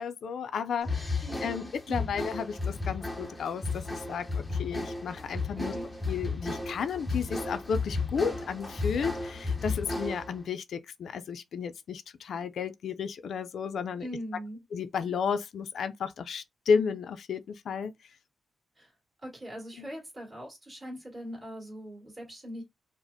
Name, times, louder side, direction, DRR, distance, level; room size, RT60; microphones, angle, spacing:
voice 1, 0.0-5.7 6.1-14.1 14.7-17.9 19.8-19.9, left 6 dB, 70° left, 0.4 m, -33 dB
sound 1, 0.8-10.4, left 3 dB, 5° left, 0.7 m, -33 dB
voice 2, 1.2-2.2 5.6-5.9 14.0-14.6 18.8-18.9 19.2-22.6, equal, 25° right, 1.9 m, -41 dB
4.9 x 2.0 x 2.6 m
wide cardioid pair, 130°, 0 cm